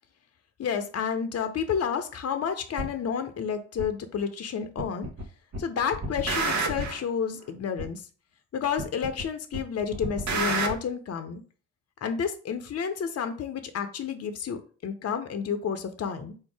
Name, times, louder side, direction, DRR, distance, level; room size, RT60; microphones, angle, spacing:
voice 1, 0.6-5.1 5.6-8.1 8.5-11.4 12.0-16.3, left 7 dB, 45° left, 0.8 m, -30 dB
sound 1, 2.8-2.9 3.8-3.9 4.8-5.2 5.5-7.0 7.8-7.9 8.8-9.2 9.5-10.7, right 3 dB, 55° right, 1.1 m, -29 dB
3.8 x 2.7 x 4.7 m
hypercardioid pair, 50°, 34 cm